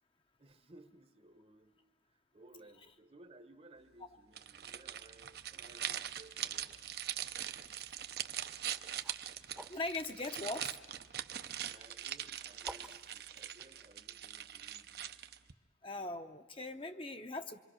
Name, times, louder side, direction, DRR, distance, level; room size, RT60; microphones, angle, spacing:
voice 1, 0.4-1.8 2.0-7.3 8.7-8.8 11.6-15.1, right 2 dB, 30° right, 10 dB, 0.9 m, -60 dB
sound 1, 4.3-15.5, right 11 dB, 55° right, 0.7 m, -42 dB
sound 2, 8.6-10.7 11.6-14.0, right 1 dB, 5° right, 0.8 m, -52 dB
voice 2, 9.7-10.7 15.8-17.6, left 2 dB, 30° left, 7 dB, 0.7 m, -40 dB
26.0 x 23.5 x 6.3 m, 1.3 s
head